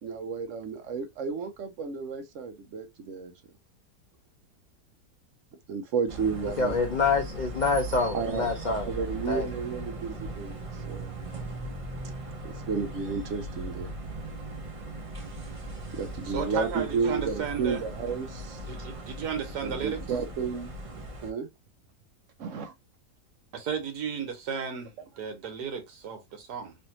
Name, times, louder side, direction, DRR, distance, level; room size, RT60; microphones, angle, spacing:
voice 1, 0.0-3.3 5.7-6.7 8.1-11.1 12.4-13.9 15.9-19.0 19.6-20.7 21.2-21.5 22.4-22.7, right 5 dB, 60° right, 0.9 m, -32 dB
sound 1, 6.1-21.3, right 1 dB, 45° right, 0.4 m, -39 dB
voice 2, 6.6-8.9 9.3-9.4, left 4 dB, 75° left, 0.4 m, -26 dB
voice 3, 16.3-17.8 18.7-20.0 23.5-26.8, right 7 dB, 75° right, 1.5 m, -34 dB
3.2 x 2.6 x 2.9 m
omnidirectional pair, 1.7 m